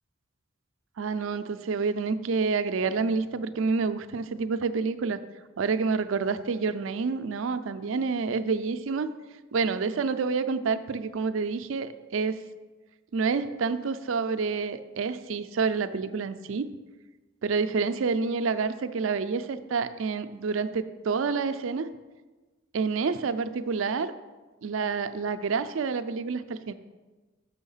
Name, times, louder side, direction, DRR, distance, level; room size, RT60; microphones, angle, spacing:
voice 1, 1.0-5.2 5.6-9.1 9.5-12.4 13.1-16.7 17.4-21.9 22.7-24.1 24.6-26.7, right 4 dB, 75° right, 11 dB, 0.4 m, -28 dB
6.4 x 6.2 x 5.6 m, 1.2 s
head